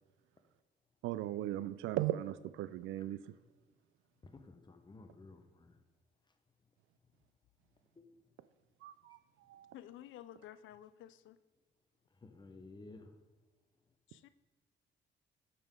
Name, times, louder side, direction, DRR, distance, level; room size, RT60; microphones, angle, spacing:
voice 1, 1.0-3.3 8.8-9.2 9.5-9.7, right 14 dB, 85° right, 15 dB, 0.4 m, -38 dB
voice 2, 4.2-5.8 8.0-8.1 12.2-13.1, left 3 dB, 20° left, 7 dB, 0.9 m, -54 dB
voice 3, 9.7-11.4 14.1-14.3, left 12 dB, 75° left, 15 dB, 0.4 m, -52 dB
8.7 x 5.8 x 3.7 m, 1.3 s
cardioid pair, 90°, 20 cm